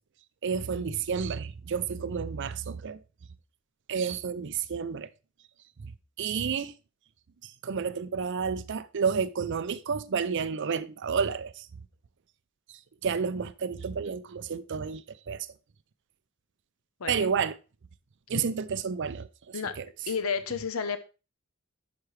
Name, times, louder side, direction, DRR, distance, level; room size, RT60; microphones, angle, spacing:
voice 1, 0.4-3.0 3.9-5.1 6.2-6.7 7.4-11.7 13.0-15.5 17.1-17.6 18.3-19.8, right 6 dB, 60° right, 0.5 m, -30 dB
voice 2, 17.0-17.3 18.3-18.4 19.5-19.8 20.1-21.0, left 5 dB, 85° left, 0.8 m, -31 dB
10.5 x 5.9 x 3.2 m
head